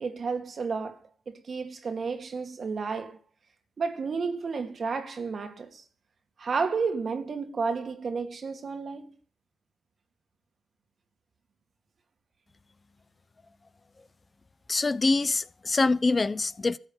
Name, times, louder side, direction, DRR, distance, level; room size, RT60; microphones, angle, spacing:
voice 1, 0.0-3.2 3.8-5.8 6.4-9.1, right 4 dB, 60° right, 2.2 m, -32 dB
voice 2, 14.7-16.8, left 3 dB, 40° left, 0.9 m, -25 dB
14.0 x 6.5 x 8.8 m
supercardioid pair, 45°, 0 cm